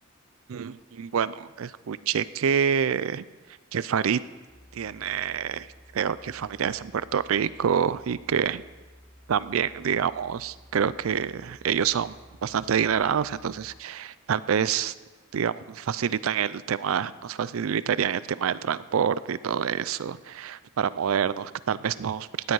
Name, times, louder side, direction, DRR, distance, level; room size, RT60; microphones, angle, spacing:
voice 1, 0.5-3.2 3.7-4.2 4.7-5.7 5.9-8.6 9.3-12.1 12.4-14.9 15.3-22.5, right 7 dB, 70° right, 17 dB, 0.4 m, -27 dB
sound 1, 4.5-13.8, equal, 10° left, 2.6 m, -54 dB
16.5 x 10.5 x 4.7 m, 1.3 s
head